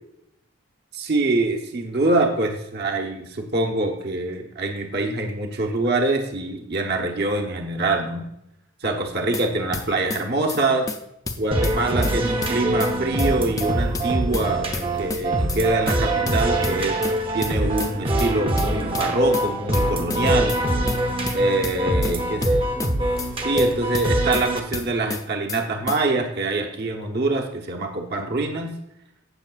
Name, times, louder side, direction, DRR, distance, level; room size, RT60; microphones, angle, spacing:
voice 1, 0.9-8.3 8.8-10.9 11.4-17.0 17.3-20.5 21.3-22.6 23.4-28.7, right 2 dB, 50° right, 2 dB, 1.1 m, -24 dB
sound 1, 9.1-9.4 9.7-10.2 10.5-10.6 10.9-11.0 11.3-12.1 12.4-12.9 13.2-13.3 13.6-14.5 14.7-15.2 15.5-15.6 15.9-16.0 16.3-17.1 17.4-17.9 18.2-18.3 18.6-19.4 19.7-20.2 20.5-20.6 20.9-21.0 21.3-22.1 22.4-22.9 23.2-23.3 23.6-24.4 24.7-25.2 25.5-25.6 25.9-26.0, left 3 dB, 15° left, 0.5 m, -30 dB
sound 2, 11.5-24.6, right 1 dB, 25° right, 0.9 m, -23 dB
16.5 x 6.6 x 2.4 m, 0.81 s
head